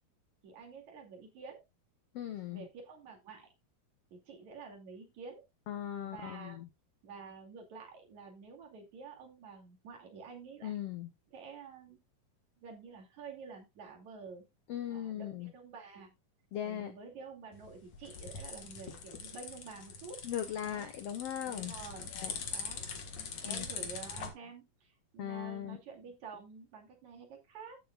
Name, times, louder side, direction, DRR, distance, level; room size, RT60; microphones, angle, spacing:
voice 1, 0.4-1.6 2.5-3.5 4.1-5.4 6.1-6.6 7.0-10.7 11.3-12.0 12.6-14.5 14.9-16.1 16.6-20.2 20.6-20.9 21.4-22.8 23.2-27.8, right 5 dB, 55° right, 2 dB, 3.8 m, -49 dB
voice 2, 2.1-2.7 5.7-6.7 10.6-11.1 14.7-15.5 16.5-16.9 20.2-21.7 22.1-22.3 23.4-23.9 25.2-25.8, left 10 dB, 85° left, 9 dB, 1.3 m, -39 dB
sound 1, 17.5-24.3, left 6 dB, 55° left, 2.5 m, -43 dB
14.0 x 7.1 x 2.4 m, 0.22 s
omnidirectional pair, 4.1 m